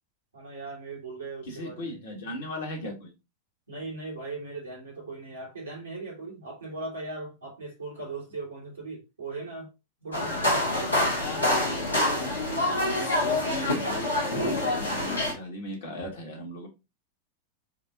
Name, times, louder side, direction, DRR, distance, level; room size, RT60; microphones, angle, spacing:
voice 1, 0.3-2.4 3.7-9.7 10.0-11.3, right 3 dB, 70° right, 2.0 m, -39 dB
voice 2, 1.5-3.1 11.0-12.4 13.2-16.7, left 1 dB, 60° left, 1.8 m, -38 dB
sound 1, 10.1-15.3, left 1 dB, 80° left, 1.5 m, -26 dB
4.7 x 2.6 x 3.7 m
figure-of-eight pair, 90°, 0 cm